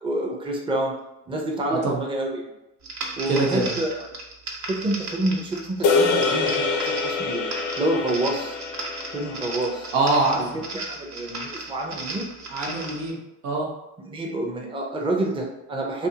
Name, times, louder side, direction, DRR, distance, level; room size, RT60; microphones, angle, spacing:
voice 1, 0.0-0.9 1.3-2.5 3.2-4.0 4.6-7.5 7.8-8.6 9.1-9.9 10.4-12.3 14.0-16.1, right 1 dB, 15° right, 0 dB, 0.6 m, -28 dB
voice 2, 1.7-2.0 3.3-3.7 9.9-10.4 12.5-13.7, right 2 dB, 85° right, -2 dB, 0.9 m, -24 dB
sound 1, 2.8-13.1, right 3 dB, 45° right, 0.8 m, -36 dB
sound 2, 5.8-10.3, left 4 dB, 55° left, 0.5 m, -25 dB
2.6 x 2.5 x 2.8 m, 0.90 s
supercardioid pair, 80°, 37 cm